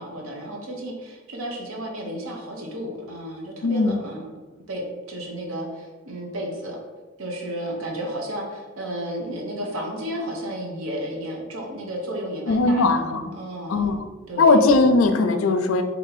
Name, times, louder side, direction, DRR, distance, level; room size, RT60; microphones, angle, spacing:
voice 1, 0.0-4.3 4.7-6.8 7.2-12.9 13.3-14.0 14.3-14.6, equal, 80° right, 0 dB, 0.8 m, -32 dB
voice 2, 3.6-3.9 12.5-13.3 13.7-14.0 14.4-15.8, left 3 dB, 85° left, 7 dB, 0.4 m, -19 dB
2.8 x 2.7 x 4.0 m, 1.3 s
head